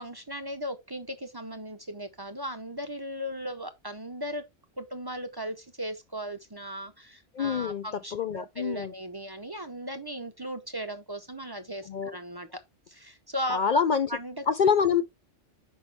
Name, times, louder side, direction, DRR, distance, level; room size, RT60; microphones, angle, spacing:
voice 1, 0.0-4.4 4.8-12.6 12.9-13.8 14.1-14.4, equal, 25° right, 0.5 m, -37 dB
voice 2, 7.3-7.9 8.1-8.9 11.9-12.2 13.5-14.1 14.5-15.1, left 6 dB, 65° left, 0.4 m, -25 dB
6.0 x 5.4 x 3.3 m
omnidirectional pair, 1.3 m